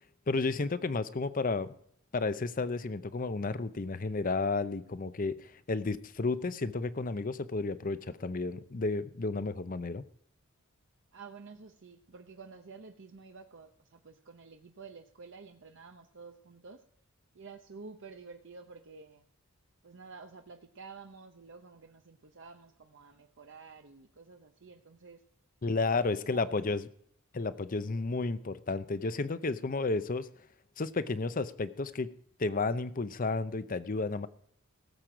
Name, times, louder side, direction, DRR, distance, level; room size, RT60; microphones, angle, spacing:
voice 1, 0.3-1.7 2.1-10.0 25.6-26.9 27.3-30.3 30.8-32.1 32.4-34.3, left 3 dB, 40° left, 14 dB, 0.6 m, -32 dB
voice 2, 11.1-16.8 17.3-19.3 19.8-25.2 26.1-26.8, right 4 dB, 60° right, 5 dB, 0.8 m, -50 dB
18.0 x 7.7 x 5.0 m, 0.67 s
head